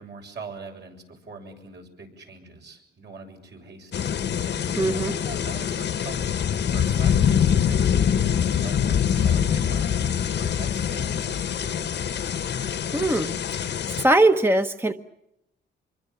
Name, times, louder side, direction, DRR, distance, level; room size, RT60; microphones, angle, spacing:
voice 1, 0.0-4.1 4.9-6.5 6.7-12.5, right 4 dB, 60° right, 2 dB, 7.3 m, -43 dB
sound 1, 3.9-14.0, left 8 dB, 60° left, 1.2 m, -24 dB
voice 2, 4.8-5.1 12.9-14.9, right 2 dB, 10° right, 8 dB, 1.1 m, -22 dB
26.0 x 23.5 x 7.2 m, 0.83 s
cardioid pair, 105°, 20 cm